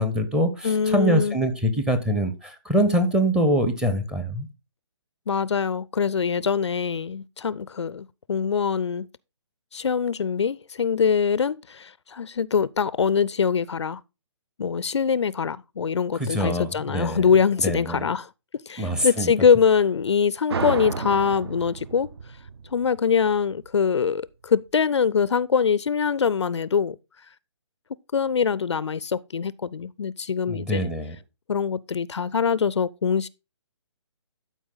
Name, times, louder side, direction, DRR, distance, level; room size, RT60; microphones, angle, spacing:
voice 1, 0.0-4.5 16.2-17.3 17.6-18.0 18.8-19.3 30.5-31.2, equal, 5° right, 0.7 m, -24 dB
voice 2, 0.6-1.4 5.3-9.1 9.7-14.0 14.6-18.3 18.7-22.1 22.7-27.0 28.1-30.9 31.5-33.3, left 6 dB, 65° left, 0.4 m, -23 dB
sound 1, 20.5-23.8, right 5 dB, 55° right, 0.7 m, -32 dB
12.0 x 4.6 x 3.8 m
figure-of-eight pair, 140°, 16 cm